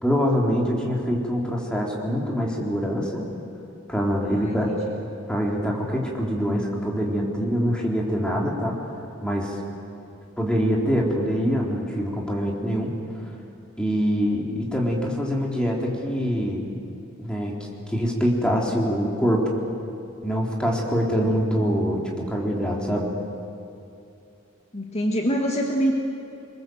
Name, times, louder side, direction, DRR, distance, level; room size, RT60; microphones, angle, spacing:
voice 1, 0.0-3.2 3.9-4.7 5.3-9.6 10.4-13.0 13.8-16.7 17.2-17.5 17.9-19.5 20.2-23.1, equal, 5° left, -2 dB, 3.6 m, -24 dB
voice 2, 24.7-26.0, equal, 35° left, 0 dB, 1.7 m, -25 dB
26.0 x 23.0 x 7.8 m, 2.7 s
head